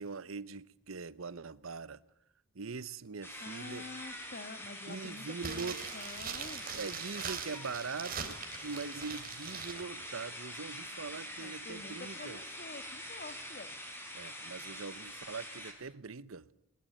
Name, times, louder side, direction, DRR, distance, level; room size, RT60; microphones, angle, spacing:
voice 1, 0.0-2.0 2.5-3.9 4.9-5.8 6.7-12.4 14.1-16.5, right 4 dB, 85° right, 0.9 m, -42 dB
sound 1, 3.2-15.7, left 1 dB, 10° left, 5.4 m, -45 dB
voice 2, 3.4-6.7 11.4-13.8, left 2 dB, 45° left, 2.1 m, -48 dB
sound 2, 5.4-9.8 10.1-10.2, right 7 dB, 45° right, 3.4 m, -42 dB
22.0 x 21.0 x 9.1 m
head